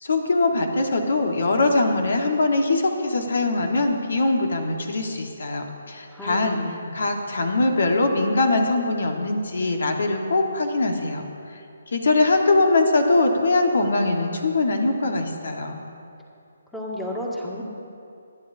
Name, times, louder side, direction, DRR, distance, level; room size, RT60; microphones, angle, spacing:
voice 1, 0.0-6.6 6.9-11.3 11.5-11.6 11.9-15.8, left 2 dB, 65° left, 4 dB, 1.5 m, -22 dB
voice 2, 6.1-7.0 16.7-17.6, left 1 dB, 5° left, -4 dB, 2.0 m, -32 dB
26.0 x 9.9 x 2.7 m, 2.5 s
figure-of-eight pair, 150°, 0 cm